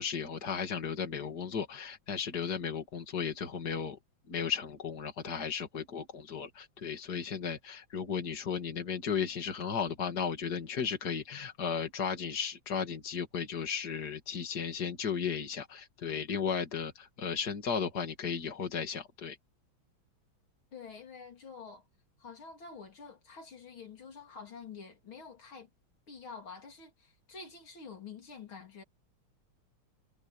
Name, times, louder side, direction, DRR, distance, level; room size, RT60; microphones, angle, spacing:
voice 1, 0.0-4.0 4.3-19.4, left 6 dB, 50° left, 3.0 m, -35 dB
voice 2, 20.7-21.9 22.2-25.7 26.1-28.8, left 5 dB, 85° left, 4.2 m, -48 dB
omnidirectional pair, 2.2 m